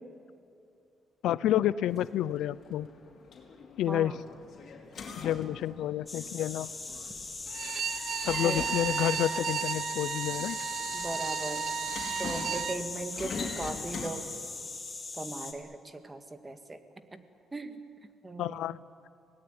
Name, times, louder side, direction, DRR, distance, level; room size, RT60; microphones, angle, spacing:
voice 1, 1.2-2.9 3.8-4.2 5.1-6.7 8.3-10.6 18.4-18.8, left 12 dB, 85° left, 18 dB, 0.5 m, -29 dB
sound 1, 1.9-14.1, left 5 dB, 60° left, 4.1 m, -44 dB
voice 2, 3.9-4.2 8.4-8.6 10.9-11.7 12.2-14.3 15.2-16.8 17.1-17.2 17.5-17.8 18.2-18.8, right 2 dB, 20° right, 8 dB, 1.9 m, -38 dB
sound 2, 6.1-15.5, left 3 dB, 25° left, 3.4 m, -40 dB
Bowed string instrument, 7.5-12.8, right 8 dB, 65° right, 0.8 m, -33 dB
25.0 x 18.5 x 9.7 m, 2.5 s
cardioid pair, 90°, 0 cm